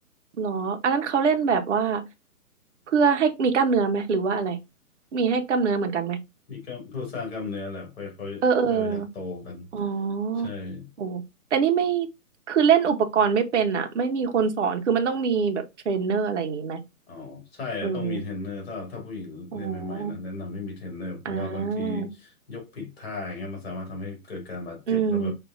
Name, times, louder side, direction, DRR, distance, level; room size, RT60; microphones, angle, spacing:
voice 1, 0.4-2.0 2.9-4.6 5.1-6.2 8.4-9.1 9.7-10.5 11.0-11.2 11.5-12.1 12.5-16.8 17.8-18.2 19.5-20.1 21.2-22.1 24.9-25.3, right 6 dB, 50° right, 1.0 m, -24 dB
voice 2, 6.5-8.4 8.7-9.7 10.3-10.9 17.1-25.3, left 3 dB, 40° left, 2.4 m, -35 dB
5.1 x 2.7 x 3.8 m
hypercardioid pair, 170°, 47 cm